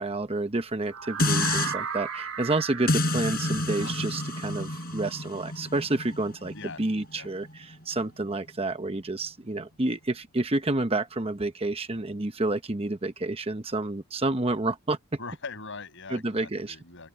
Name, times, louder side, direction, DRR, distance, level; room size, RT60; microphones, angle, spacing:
voice 1, 0.0-15.0 16.1-16.8, right 2 dB, 25° right, 1.0 m, -29 dB
sound 1, 0.9-6.8, right 7 dB, 70° right, 2.7 m, -37 dB
sound 2, 1.2-1.7 2.9-8.0 8.5-8.6, left 2 dB, 45° left, 5.6 m, -30 dB
voice 2, 15.2-17.1, left 4 dB, 60° left, 7.6 m, -41 dB
open air
head